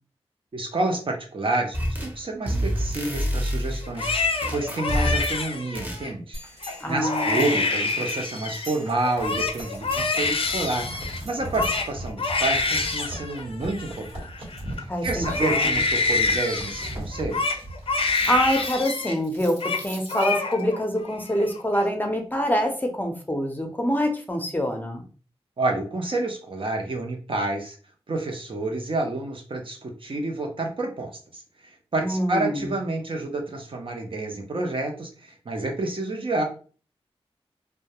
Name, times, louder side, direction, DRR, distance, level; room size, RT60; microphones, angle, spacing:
voice 1, 0.5-14.3 14.8-17.5 25.6-27.8 28.1-36.4, right 2 dB, 55° right, 2 dB, 0.7 m, -29 dB
sound 1, 1.7-2.2 2.4-5.4 5.7-6.0, equal, 15° right, 0.8 m, -27 dB
Crying sobbing, 3.8-6.1 6.6-6.8 7.0-8.7 9.0-14.8 15.2-19.2 19.4-19.8 20.1-20.8 21.2-21.8, left 3 dB, 60° left, 0.4 m, -27 dB
sound 2, 6.3-20.6, right 1 dB, 80° right, 1.1 m, -39 dB
voice 2, 6.8-7.4 14.9-15.8 18.3-25.0 32.0-32.7, equal, 15° left, 3 dB, 0.6 m, -25 dB
2.2 x 2.2 x 2.8 m, 0.37 s
wide cardioid pair, 60°, 11 cm